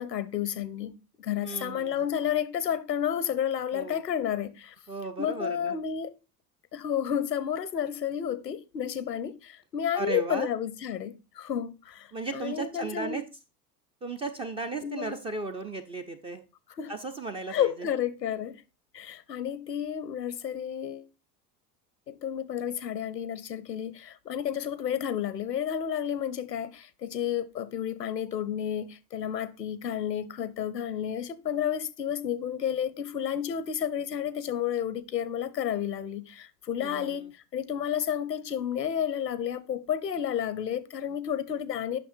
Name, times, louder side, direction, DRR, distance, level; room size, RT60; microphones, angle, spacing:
voice 1, 0.0-4.7 5.2-6.1 6.7-13.2 14.8-15.1 16.8-16.9 17.5-18.6 18.9-21.1 22.1-42.0, left 9 dB, 85° left, 0.6 m, -31 dB
voice 2, 1.4-2.1 3.7-4.0 4.9-5.8 9.9-10.5 12.1-13.2 14.0-16.4 16.9-17.9 36.8-37.3, right 3 dB, 15° right, 0.3 m, -35 dB
9.0 x 5.9 x 2.5 m
figure-of-eight pair, 75°, 48 cm